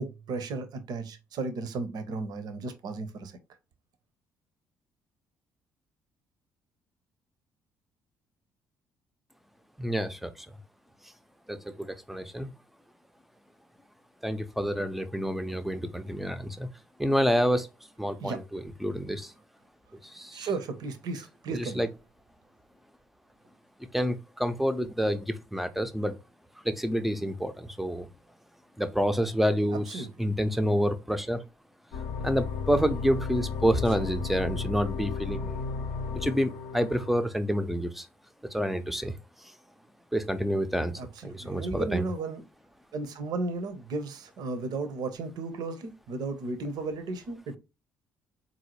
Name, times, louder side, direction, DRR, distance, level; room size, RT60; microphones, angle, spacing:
voice 1, 0.0-3.3 18.2-18.4 20.3-21.9 29.9-30.1 41.0-42.4 42.9-47.6, right 3 dB, 55° right, 0.7 m, -34 dB
voice 2, 9.8-10.5 11.5-12.5 14.2-16.7 17.0-17.7 18.0-19.3 20.0-20.5 21.5-21.9 23.8-26.2 26.6-28.1 28.8-31.4 32.2-35.6 36.1-38.1 38.5-39.1 40.1-42.0, equal, ahead, 0.5 m, -28 dB
sound 1, 31.9-37.2, left 5 dB, 70° left, 0.6 m, -34 dB
3.8 x 2.7 x 2.9 m
figure-of-eight pair, 50°, 8 cm